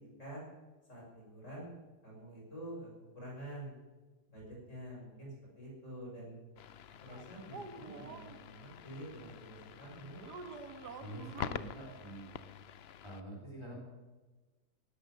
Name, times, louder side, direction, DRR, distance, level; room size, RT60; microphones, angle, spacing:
voice 1, 0.9-1.7 2.0-3.8 4.3-5.3 5.6-6.4 7.0-10.2, right 1 dB, 45° left, -4 dB, 6.9 m, -47 dB
sound 1, 6.6-13.2, left 9 dB, 70° left, 0.6 m, -47 dB
sound 2, 7.1-8.4 10.2-11.6, right 4 dB, 80° right, 1.9 m, -47 dB
voice 2, 11.0-12.3 13.0-13.8, right 1 dB, 15° right, 0 dB, 3.3 m, -46 dB
17.5 x 12.0 x 6.4 m, 1.2 s
omnidirectional pair, 1.7 m